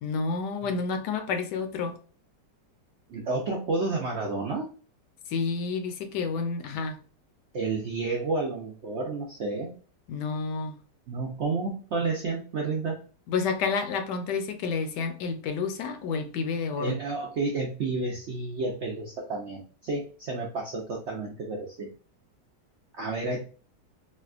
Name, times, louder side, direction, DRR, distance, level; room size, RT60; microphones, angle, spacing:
voice 1, 0.0-2.0 5.3-7.0 10.1-10.8 13.3-16.9, left 5 dB, 75° left, 1.1 m, -30 dB
voice 2, 3.1-4.7 7.5-9.7 11.1-13.0 16.8-21.9 23.0-23.4, right 3 dB, 85° right, 0.6 m, -31 dB
4.2 x 2.2 x 2.3 m
omnidirectional pair, 1.9 m